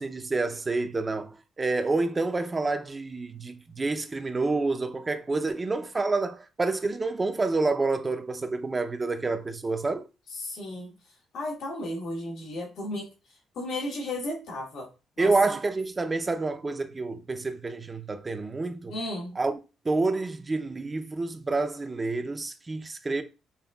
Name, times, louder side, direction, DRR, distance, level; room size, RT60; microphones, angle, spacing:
voice 1, 0.0-10.0 15.2-18.9 19.4-19.6 19.8-23.2, right 3 dB, 25° right, 0.5 m, -28 dB
voice 2, 10.3-10.9 11.3-13.1 13.5-14.9 15.2-15.6 18.9-19.4, left 1 dB, 75° left, 1.5 m, -34 dB
5.5 x 2.6 x 2.3 m
cardioid pair, 90°, 0 cm